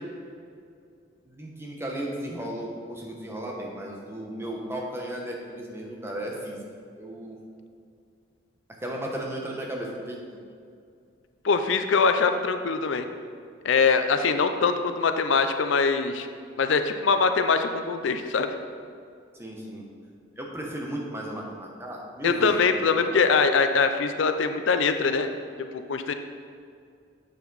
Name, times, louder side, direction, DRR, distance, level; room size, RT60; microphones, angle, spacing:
voice 1, 1.3-6.6 7.0-7.4 8.8-10.4 19.3-19.9 20.4-23.2, right 1 dB, 15° right, -1 dB, 1.0 m, -35 dB
voice 2, 11.4-13.1 13.6-16.3 16.6-18.6 22.2-25.3 25.6-26.1, left 5 dB, 75° left, 8 dB, 0.5 m, -23 dB
7.8 x 7.1 x 4.0 m, 2.4 s
head